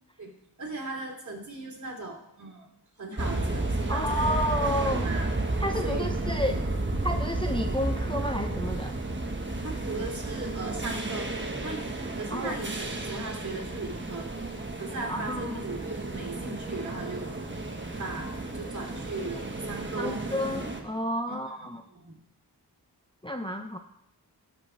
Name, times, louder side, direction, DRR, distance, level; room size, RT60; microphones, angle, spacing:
voice 1, 0.6-2.7 3.0-4.4 4.8-5.3 5.8-6.6 9.6-11.3 11.6-14.3 14.8-20.2 21.3-21.4 21.9-22.2, right 2 dB, 45° right, -2 dB, 3.1 m, -38 dB
sound 1, 3.2-20.8, right 2 dB, 30° right, 1.4 m, -32 dB
voice 2, 3.9-5.1 5.6-6.6 7.0-9.0 12.3-12.6 15.1-15.6 20.0-21.8 23.2-23.8, equal, 15° left, 4 dB, 0.7 m, -31 dB
17.5 x 7.7 x 3.4 m, 0.76 s
wide cardioid pair, 85°, 39 cm